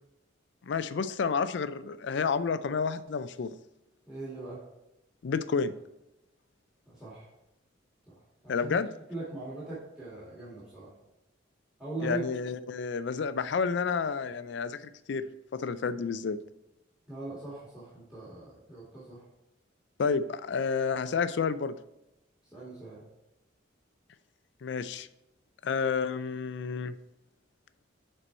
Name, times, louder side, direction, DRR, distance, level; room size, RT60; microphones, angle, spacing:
voice 1, 0.6-3.5 5.2-5.7 8.5-8.9 12.0-16.4 20.0-21.7 24.6-25.1 25.6-26.9, left 5 dB, 60° left, 14 dB, 0.4 m, -30 dB
voice 2, 4.1-4.6 6.9-7.3 8.4-8.8 9.1-10.9 11.8-12.2 17.1-19.2 22.5-23.0, right 2 dB, 5° right, -9 dB, 2.0 m, -40 dB
6.7 x 4.4 x 4.4 m, 0.91 s
head